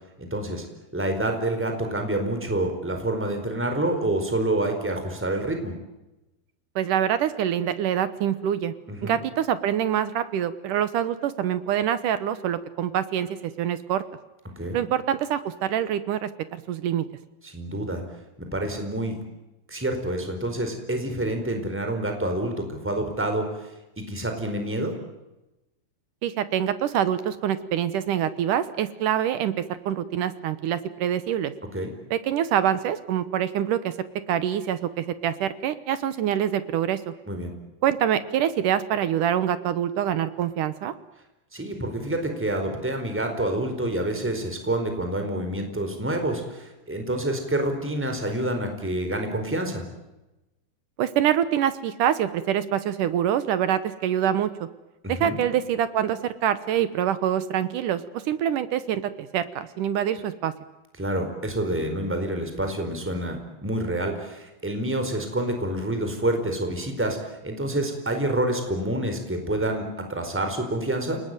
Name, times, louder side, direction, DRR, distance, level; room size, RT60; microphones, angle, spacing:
voice 1, 0.2-0.7 0.9-5.8 8.9-9.2 14.6-14.8 17.4-18.0 18.4-19.2 19.7-24.9 31.7-31.9 37.3-37.5 41.5-49.8 55.0-55.4 61.0-71.2, right 1 dB, 5° right, 5 dB, 4.0 m, -28 dB
voice 2, 6.8-8.7 9.0-14.0 14.7-17.1 26.2-31.5 32.1-33.9 34.3-37.1 37.8-40.9 51.0-54.5 55.1-58.0 58.3-60.5, right 10 dB, 70° right, 13 dB, 2.1 m, -25 dB
29.0 x 19.5 x 9.2 m, 1.0 s
omnidirectional pair, 4.9 m